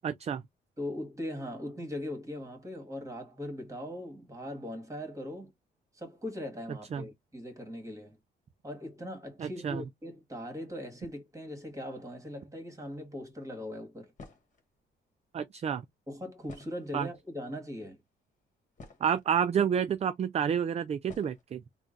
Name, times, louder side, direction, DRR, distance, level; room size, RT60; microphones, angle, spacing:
voice 1, 0.0-0.4 6.9-7.0 9.4-9.8 15.3-15.8 16.9-17.1 19.0-21.6, right 8 dB, 35° right, 0.4 m, -29 dB
voice 2, 0.8-5.5 5.9-8.2 8.6-14.1 16.1-18.0, left 1 dB, 15° right, 1.9 m, -40 dB
sound 1, 14.2-14.6 16.4-17.2 18.0-18.1 18.5-19.3 20.2-20.3 21.1-21.4, left 3 dB, 40° left, 1.4 m, -50 dB
3.6 x 2.2 x 3.9 m
cardioid pair, 90°, 20 cm